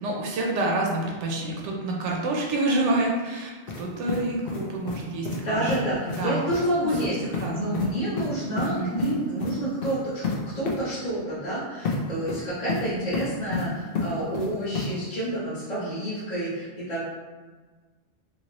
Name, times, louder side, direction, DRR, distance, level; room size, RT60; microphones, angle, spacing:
voice 1, 0.0-3.5 3.8-6.4 7.0-7.8 8.7-8.9, right 2 dB, 90° right, -2 dB, 0.9 m, -28 dB
sound 1, 3.7-3.8 4.1-5.0 5.3-5.4 5.7-5.8 6.1-6.2 6.5-6.6 6.9-7.1 7.3-7.5 7.7-7.9 8.2-8.7 9.0-9.1 9.4-9.5 9.8-9.9 10.2-10.4 10.7-10.8 11.9-12.0 12.3-12.8 13.1-13.7 14.0-14.5 14.8-14.9, left 4 dB, 60° left, 0.7 m, -29 dB
voice 2, 5.4-7.2 7.5-10.2 10.5-17.0, right 1 dB, 40° left, -11 dB, 1.1 m, -29 dB
3.0 x 2.9 x 2.9 m, 1.4 s
omnidirectional pair, 1.2 m